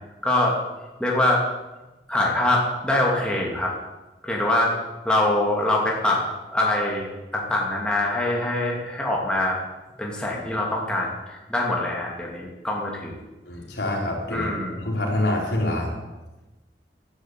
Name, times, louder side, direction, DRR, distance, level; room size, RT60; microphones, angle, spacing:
voice 1, 0.2-0.5 1.0-1.4 2.1-3.7 4.2-4.7 5.0-6.2 6.5-9.6 10.0-13.1 14.3-14.8, left 1 dB, 5° left, -3 dB, 2.7 m, -24 dB
voice 2, 13.5-14.5 14.8-15.9, left 1 dB, 75° left, -1 dB, 4.6 m, -26 dB
12.5 x 11.5 x 8.4 m, 1.1 s
head